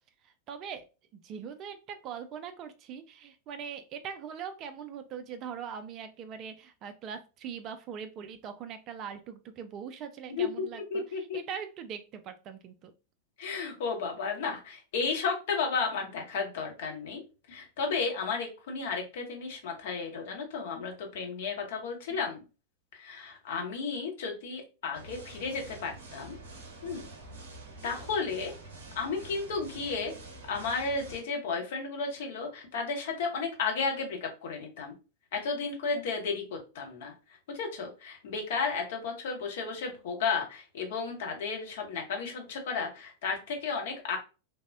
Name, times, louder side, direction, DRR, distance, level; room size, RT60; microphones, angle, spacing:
voice 1, 0.2-0.9 1.1-12.9, right 7 dB, 35° right, 10 dB, 0.3 m, -41 dB
voice 2, 10.3-11.4 13.4-17.2 17.5-22.4 22.9-26.4 26.8-27.1 27.8-28.5 29.0-30.1 30.5-34.9 35.3-37.1 37.5-44.2, left 5 dB, 55° left, 2 dB, 0.8 m, -33 dB
sound 1, 24.9-31.2, right 2 dB, 60° right, 0.7 m, -47 dB
3.3 x 2.0 x 2.4 m, 0.31 s
figure-of-eight pair, 90°, 0 cm